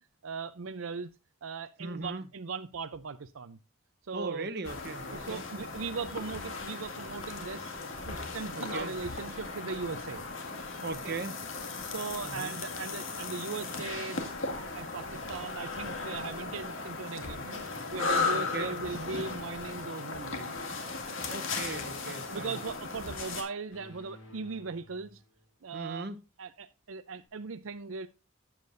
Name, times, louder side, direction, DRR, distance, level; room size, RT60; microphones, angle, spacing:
voice 1, 0.2-1.1 1.4-3.6 4.1-4.5 5.1-7.8 8.1-10.2 11.0-11.1 11.8-14.4 14.7-17.6 17.9-20.5 22.1-25.2 25.6-26.1 26.4-28.1, right 4 dB, 75° right, 0.6 m, -39 dB
voice 2, 1.8-2.3 4.1-5.4 8.5-9.0 10.8-11.3 12.2-12.6 18.3-18.8 21.3-22.6 25.7-26.2, right 3 dB, 50° right, 0.9 m, -38 dB
sound 1, 4.6-23.4, left 4 dB, 65° left, 2.1 m, -36 dB
sound 2, 20.8-25.5, left 1 dB, 90° left, 6.9 m, -53 dB
13.0 x 8.7 x 2.6 m
head